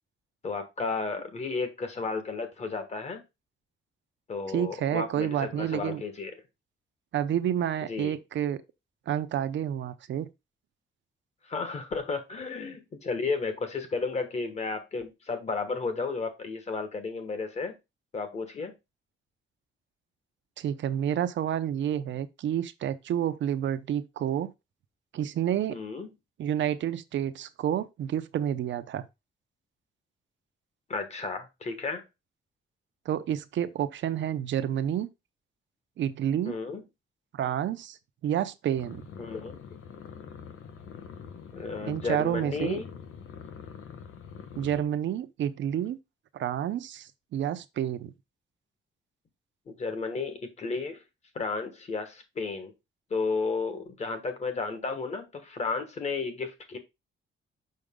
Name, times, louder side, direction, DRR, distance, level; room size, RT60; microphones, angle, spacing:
voice 1, 0.4-3.2 4.3-6.3 7.8-8.2 11.4-17.8 18.1-18.7 25.7-26.1 30.9-32.0 36.4-36.8 39.2-39.6 41.5-42.9 49.7-51.0 51.3-52.7 53.1-56.8, left 4 dB, 30° left, 1.4 m, -33 dB
voice 2, 4.5-6.0 7.1-8.6 9.1-10.3 20.6-24.5 25.1-25.8 26.4-29.1 33.1-35.1 36.0-36.6 37.3-38.0 38.2-39.0 41.8-42.8 44.5-46.0 46.3-48.1, right 10 dB, 65° right, 0.7 m, -29 dB
sound 1, 38.8-44.8, left 7 dB, 85° left, 1.2 m, -44 dB
6.5 x 5.7 x 3.7 m
wide cardioid pair, 175°, 21 cm